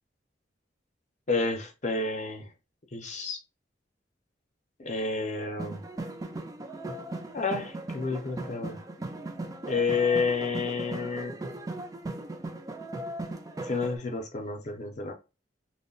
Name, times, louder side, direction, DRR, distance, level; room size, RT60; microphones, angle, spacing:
voice 1, 1.3-2.5 2.9-3.4 4.8-5.8 7.3-8.8 9.7-11.4 13.6-15.1, left 4 dB, 40° left, 0.6 m, -30 dB
sound 1, 5.6-14.0, right 2 dB, 20° right, 0.4 m, -38 dB
2.2 x 2.1 x 3.8 m
head